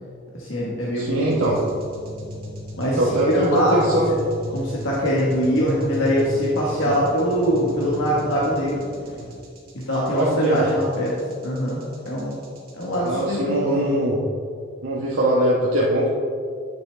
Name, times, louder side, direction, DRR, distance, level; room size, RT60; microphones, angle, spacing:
voice 1, 0.3-1.5 2.8-4.0 4.5-8.9 9.7-11.2 11.4-12.4 12.7-13.9, equal, 70° left, -6 dB, 1.4 m, -23 dB
voice 2, 1.0-1.6 3.0-4.1 6.8-6.9 10.1-10.6 13.0-14.2 14.8-16.1, right 1 dB, 85° right, -6 dB, 1.2 m, -21 dB
sound 1, 1.3-13.2, equal, 45° right, 1.7 m, -36 dB
10.0 x 6.7 x 3.3 m, 2.3 s
head